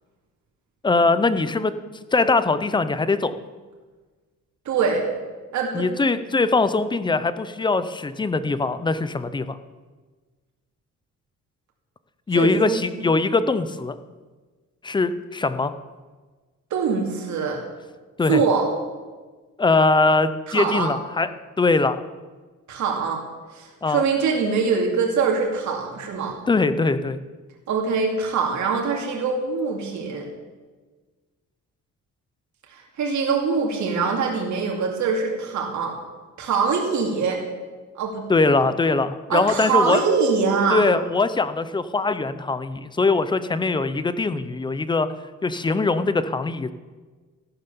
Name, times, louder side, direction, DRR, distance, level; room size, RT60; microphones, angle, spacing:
voice 1, 0.8-1.7 2.1-3.3 5.7-9.6 12.3-13.9 14.8-15.7 18.2-18.4 19.6-21.3 21.6-22.0 23.8-24.0 26.5-27.2 38.3-40.0 40.7-45.1 45.4-46.7, left 3 dB, 15° left, 13 dB, 0.5 m, -21 dB
voice 2, 4.7-5.0 5.5-5.9 12.3-12.8 16.7-17.6 18.3-18.7 20.5-20.9 22.7-23.2 23.5-26.4 27.7-30.3 32.7-35.9 36.4-37.4 38.0-38.3 39.3-40.9, right 5 dB, 65° right, 0 dB, 2.6 m, -23 dB
14.5 x 11.5 x 7.0 m, 1.4 s
cardioid pair, 175°, 31 cm